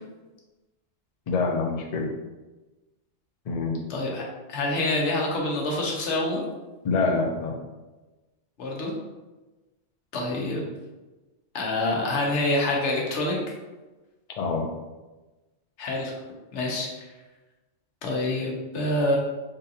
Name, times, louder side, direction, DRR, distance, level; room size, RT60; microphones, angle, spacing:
voice 1, 1.3-2.1 3.5-3.8 6.8-7.5 14.4-14.7, left 4 dB, 50° left, 1 dB, 0.5 m, -25 dB
voice 2, 3.9-4.2 4.5-6.4 8.6-8.9 10.1-10.6 11.5-13.4 15.8-16.1 16.5-17.0 18.0-19.2, left 2 dB, 85° left, -2 dB, 1.1 m, -26 dB
3.8 x 2.5 x 2.7 m, 1.1 s
omnidirectional pair, 1.2 m